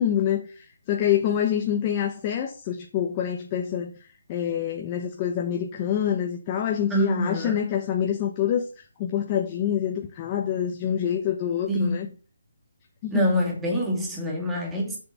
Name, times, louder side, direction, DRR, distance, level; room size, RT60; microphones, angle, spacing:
voice 1, 0.0-3.9 4.3-12.1 13.0-13.3, left 9 dB, 25° left, 1.1 m, -26 dB
voice 2, 6.9-7.6 11.7-12.0 13.1-15.0, equal, 5° right, 2.4 m, -25 dB
6.9 x 6.9 x 5.7 m
hypercardioid pair, 160°, 0 cm